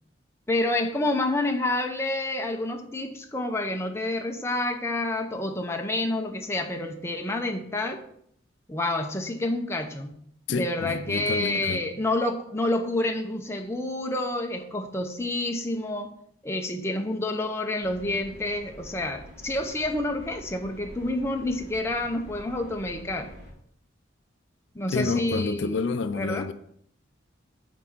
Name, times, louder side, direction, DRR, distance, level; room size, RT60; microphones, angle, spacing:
voice 1, 0.5-8.0 8.7-10.1 10.6-16.1 16.4-23.3 24.7-25.8 26.1-26.5, left 2 dB, 15° left, 0.7 m, -28 dB
voice 2, 10.5-11.9 24.9-26.5, left 4 dB, 65° left, 0.4 m, -28 dB
sound 1, 17.8-23.5, equal, 85° right, 2.4 m, -46 dB
5.9 x 4.6 x 6.1 m
head